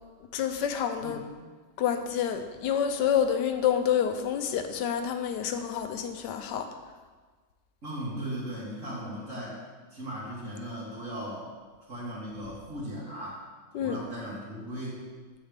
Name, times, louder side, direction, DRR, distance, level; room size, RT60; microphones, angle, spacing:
voice 1, 0.3-1.2 1.8-6.7 13.7-14.0, left 8 dB, 80° left, 7 dB, 1.3 m, -28 dB
voice 2, 1.0-1.3 7.8-9.6 9.9-11.5 11.9-13.5 13.8-15.0, equal, 45° right, -10 dB, 2.3 m, -37 dB
8.9 x 8.1 x 3.5 m, 1.4 s
omnidirectional pair, 1.9 m